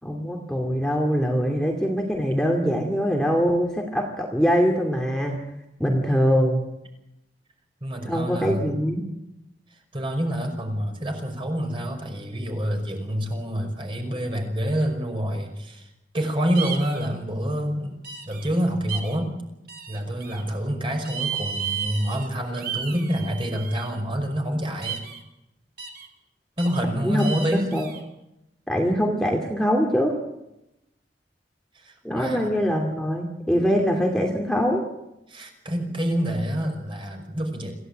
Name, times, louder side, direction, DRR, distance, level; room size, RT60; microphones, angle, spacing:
voice 1, 0.0-5.4 5.8-6.6 8.0-9.1 27.0-27.9 28.7-30.2 32.0-34.8, equal, 5° left, 1 dB, 2.5 m, -23 dB
voice 2, 7.8-8.7 9.7-19.3 19.9-25.0 26.6-27.7 31.7-32.5 35.3-37.7, equal, 30° right, 4 dB, 5.5 m, -27 dB
sound 1, 16.5-17.1 18.0-18.5 18.9-19.2 19.7-20.4 21.0-22.3 22.6-23.9 24.8-25.2 25.8-26.1 26.6-26.8 27.2-28.0, right 8 dB, 60° right, 3.6 m, -33 dB
26.5 x 16.0 x 9.0 m, 0.89 s
head